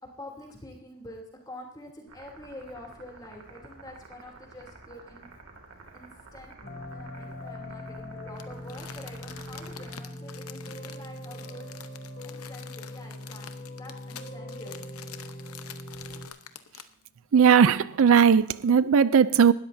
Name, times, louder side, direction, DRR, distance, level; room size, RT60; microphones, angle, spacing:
voice 1, 0.0-5.3 5.9-6.5 6.9-11.7 12.2-14.8, left 1 dB, 20° left, 3.0 m, -46 dB
sound 1, 2.1-10.0, right 3 dB, 85° right, 2.4 m, -50 dB
sound 2, 6.6-16.3, left 1 dB, 45° left, 2.6 m, -41 dB
Crumpling crinkling, 8.4-17.0 17.5-17.6, left 9 dB, 85° left, 0.9 m, -46 dB
voice 2, 17.3-19.5, right 7 dB, 70° right, 0.4 m, -18 dB
19.5 x 13.0 x 2.7 m
head